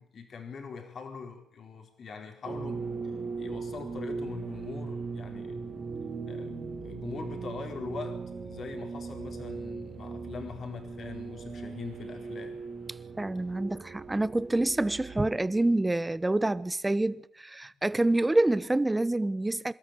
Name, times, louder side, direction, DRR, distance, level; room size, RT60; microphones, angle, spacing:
voice 1, 0.0-2.8 3.4-5.7 6.3-12.6, left 5 dB, 55° left, 4.3 m, -42 dB
sound 1, 2.4-15.7, right 4 dB, 40° right, 3.6 m, -39 dB
voice 2, 13.2-19.7, right 2 dB, 15° right, 1.0 m, -27 dB
27.0 x 13.0 x 9.2 m
cardioid pair, 90°, 0 cm